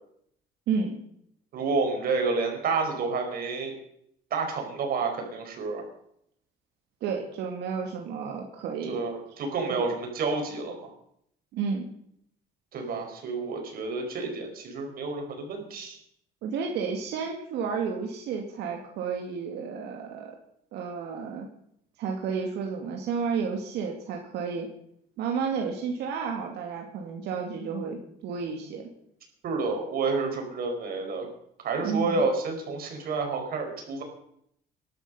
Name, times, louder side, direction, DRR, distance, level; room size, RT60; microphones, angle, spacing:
voice 1, 0.7-1.0 7.0-9.0 9.7-9.9 11.5-11.8 16.4-20.3 20.7-21.5 22.0-24.7 25.2-28.8 31.8-32.2, right 5 dB, 80° right, 2 dB, 2.4 m, -31 dB
voice 2, 1.5-3.8 4.3-5.8 8.9-10.9 12.7-16.0 29.4-31.3 31.6-34.0, right 4 dB, 60° right, 3 dB, 5.3 m, -29 dB
18.5 x 12.0 x 5.6 m, 0.71 s
cardioid pair, 110°, 17 cm